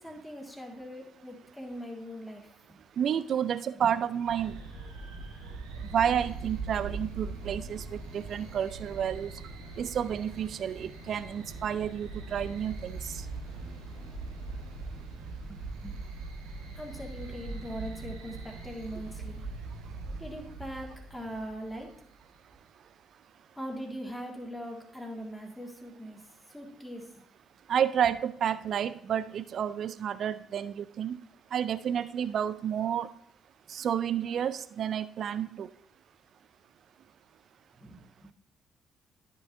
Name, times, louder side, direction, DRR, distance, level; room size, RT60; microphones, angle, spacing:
voice 1, 0.0-2.8 3.7-3.9 15.4-16.0 16.8-19.4 20.2-22.0 23.6-26.2 26.5-27.2 37.7-38.3, equal, 10° left, 1 dB, 1.9 m, -41 dB
voice 2, 3.0-4.6 5.8-9.3 9.8-13.1 27.7-31.2 31.5-33.1 33.7-35.7, right 9 dB, 55° right, 15 dB, 0.3 m, -30 dB
sound 1, 4.2-22.2, right 3 dB, 75° right, 1.4 m, -41 dB
sound 2, 7.3-15.0, left 4 dB, 70° left, 1.4 m, -54 dB
12.0 x 5.6 x 2.6 m, 0.68 s
figure-of-eight pair, 45°, 0 cm